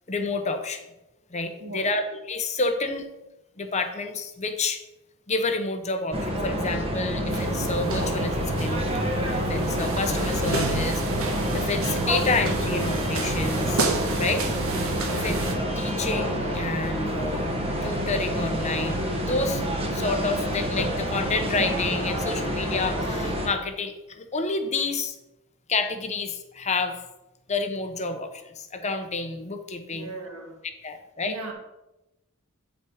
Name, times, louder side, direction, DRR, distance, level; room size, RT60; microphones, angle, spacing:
voice 1, 0.1-0.8 1.3-3.1 3.6-4.8 5.3-8.9 9.3-13.9 14.2-14.5 15.1-15.4 15.8-17.5 17.8-19.6 19.9-25.2 25.7-27.0 27.5-30.1 30.8-31.3, left 3 dB, 30° left, 7 dB, 0.8 m, -29 dB
voice 2, 1.6-1.9 15.0-15.4 29.9-30.6 31.2-31.5, right 2 dB, 85° right, 2 dB, 1.9 m, -38 dB
sound 1, 6.1-23.5, equal, 25° right, 1.1 m, -28 dB
sound 2, 7.3-15.5, right 2 dB, 65° right, 1.3 m, -29 dB
8.7 x 5.6 x 5.0 m, 0.95 s
head